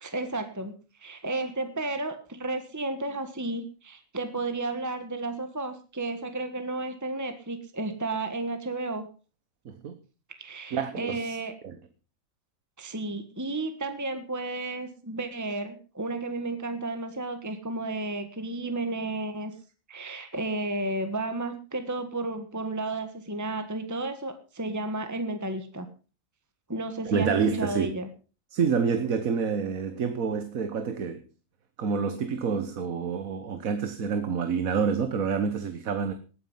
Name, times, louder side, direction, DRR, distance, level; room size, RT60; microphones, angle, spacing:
voice 1, 0.0-9.1 10.4-11.5 12.8-19.5 19.9-25.9 26.7-28.1, right 2 dB, 15° right, 1.4 m, -32 dB
voice 2, 9.6-10.0 10.7-11.4 11.6-11.8 27.0-28.0 28.5-31.2 31.8-36.1, right 6 dB, 80° right, 1.6 m, -28 dB
18.5 x 9.4 x 5.5 m
omnidirectional pair, 1.4 m